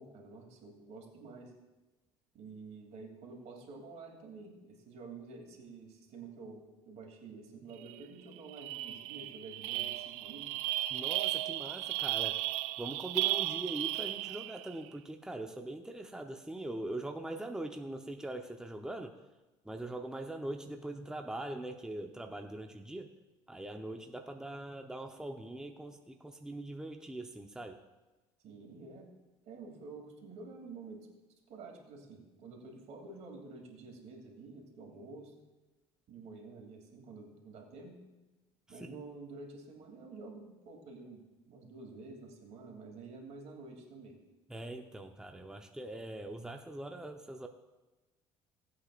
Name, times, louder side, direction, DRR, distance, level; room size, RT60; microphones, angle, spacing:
voice 1, 0.0-1.5 2.3-10.5 28.4-29.1 29.4-31.1 31.5-35.3 36.1-38.0 38.7-44.2, right 3 dB, 65° right, 1 dB, 2.9 m, -49 dB
sound 1, 7.9-8.0 8.3-14.7, right 16 dB, 80° right, 0.4 m, -35 dB
voice 2, 10.9-12.4 12.8-19.1 19.6-23.1 23.5-27.8 38.8-39.0 44.5-47.5, right 1 dB, 5° right, 4 dB, 0.9 m, -42 dB
18.0 x 8.4 x 2.5 m, 1.1 s
supercardioid pair, 75°, 13 cm